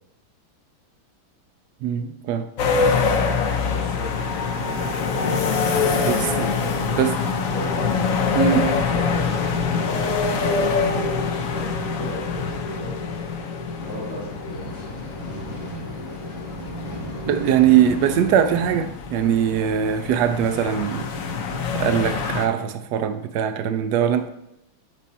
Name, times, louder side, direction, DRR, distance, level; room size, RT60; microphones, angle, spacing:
voice 1, 1.8-2.5 6.0-6.5 7.0-7.1 8.3-8.7 17.3-21.1 21.7-24.3, right 9 dB, 85° right, 0.9 m, -21 dB
sound 1, 2.6-22.5, left 5 dB, 80° left, 0.7 m, -25 dB
voice 2, 3.7-4.2 5.0-7.1 7.5-8.6 8.8-12.4 12.7-13.1 13.7-14.7, right 1 dB, 45° right, 3.5 m, -36 dB
sound 2, 13.8-18.9, left 1 dB, 30° left, 2.3 m, -35 dB
9.0 x 4.2 x 4.1 m
omnidirectional pair, 2.4 m